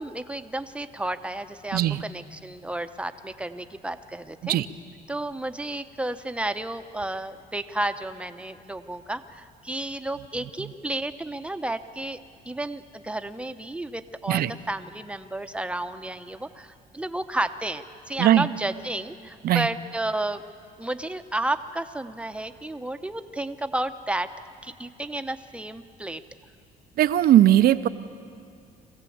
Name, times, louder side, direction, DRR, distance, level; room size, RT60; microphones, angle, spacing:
voice 1, 0.0-4.6 5.1-12.2 12.4-20.4 20.8-24.3 24.6-26.2, right 1 dB, 5° right, 9 dB, 0.9 m, -32 dB
voice 2, 1.7-2.0 4.4-4.7 14.3-14.5 18.2-18.5 19.4-19.7 27.0-27.9, right 12 dB, 65° right, 12 dB, 0.7 m, -19 dB
24.0 x 16.0 x 8.7 m, 2.5 s
cardioid pair, 110°, 17 cm